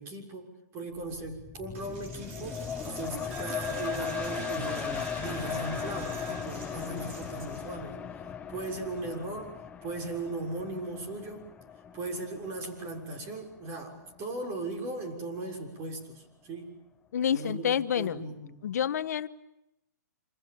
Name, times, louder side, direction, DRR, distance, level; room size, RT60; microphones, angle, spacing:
voice 1, 0.0-8.0 8.5-9.5 9.8-11.5 11.9-16.8 17.3-18.6, right 2 dB, 25° right, 4 dB, 6.6 m, -38 dB
sound 1, 1.0-14.2 14.7-14.8, left 7 dB, 15° left, 1.2 m, -38 dB
Coin (dropping), 1.7-7.8, right 6 dB, 45° right, 6.3 m, -44 dB
voice 2, 17.1-18.2 18.6-19.3, left 9 dB, 65° left, 12 dB, 1.4 m, -28 dB
27.5 x 27.5 x 7.2 m, 0.86 s
hypercardioid pair, 140°, 10 cm